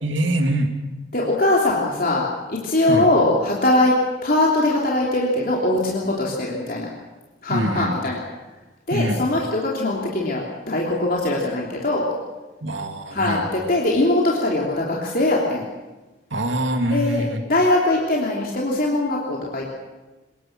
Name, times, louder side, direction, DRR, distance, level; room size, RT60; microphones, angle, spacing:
voice 1, 0.0-0.7 2.9-3.1 7.5-8.0 8.9-9.3 12.6-13.5 16.3-17.4, right 1 dB, 85° right, 4 dB, 2.7 m, -24 dB
voice 2, 1.1-3.9 4.2-6.9 7.4-8.2 8.9-12.1 13.1-15.6 16.9-19.7, left 2 dB, 50° left, -3 dB, 3.3 m, -21 dB
25.0 x 21.0 x 6.2 m, 1.2 s
head